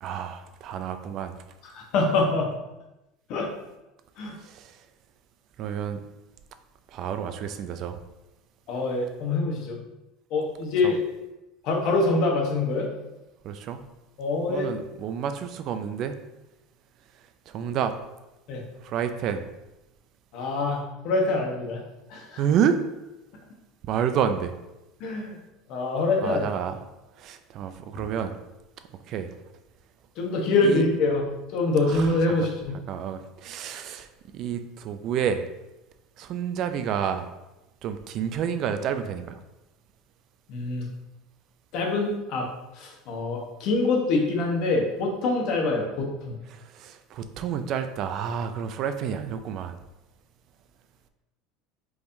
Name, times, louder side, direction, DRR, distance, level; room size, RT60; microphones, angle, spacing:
voice 1, 0.0-1.3 4.4-4.8 5.6-6.0 6.9-8.0 10.8-10.9 13.4-13.8 14.5-16.2 17.5-17.9 18.8-19.4 22.4-22.8 23.9-24.5 26.2-26.8 27.2-28.4 29.1-29.3 30.6-30.8 31.9-32.2 32.9-35.4 36.2-37.3 37.8-39.4 46.5-49.8, right 8 dB, 55° right, 9 dB, 0.4 m, -29 dB
voice 2, 1.7-2.5 3.3-3.5 4.2-4.3 8.7-9.8 10.3-11.0 11.6-12.9 14.2-14.7 18.5-18.6 20.3-21.8 22.1-22.4 25.0-25.4 25.7-26.4 30.2-31.2 31.5-32.8 40.5-40.9 41.7-42.5 42.7-46.4, left 3 dB, 60° left, 0 dB, 1.1 m, -25 dB
4.6 x 3.4 x 2.6 m, 0.98 s
supercardioid pair, 105°, 0 cm